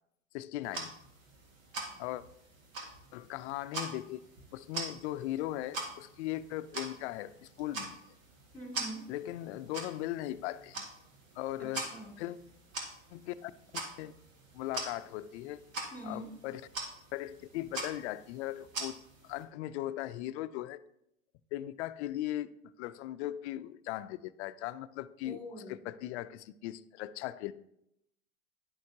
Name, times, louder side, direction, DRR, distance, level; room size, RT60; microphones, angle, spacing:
voice 1, 0.3-0.9 2.0-2.2 3.1-4.2 4.5-8.0 9.1-10.8 11.4-11.9 12.2-12.4 13.1-13.5 14.0-14.1 14.5-15.6 16.0-16.6 17.1-18.9 19.2-20.8 21.5-22.5 22.8-25.4 25.7-27.5, left 14 dB, 60° left, 14 dB, 0.5 m, -38 dB
sound 1, 0.6-19.4, right 2 dB, 80° right, 2.0 m, -44 dB
voice 2, 8.5-9.1 11.8-12.1 15.9-16.3 25.2-25.8, equal, 5° left, 1 dB, 2.3 m, -43 dB
10.5 x 6.4 x 2.8 m, 0.78 s
hypercardioid pair, 110°, 39 cm